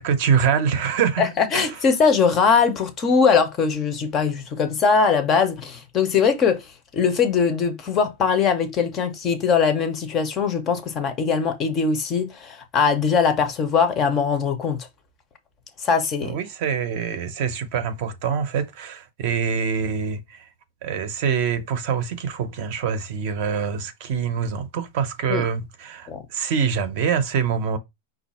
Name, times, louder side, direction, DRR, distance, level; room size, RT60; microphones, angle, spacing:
voice 1, 0.0-1.2 1.5-1.8 16.2-20.5 20.8-27.8, right 7 dB, 35° right, 0.7 m, -25 dB
voice 2, 1.2-14.9 15.8-16.4 25.3-25.4 26.1-26.2, left 5 dB, 20° left, 0.6 m, -21 dB
5.3 x 2.4 x 4.1 m
supercardioid pair, 180°, 0 cm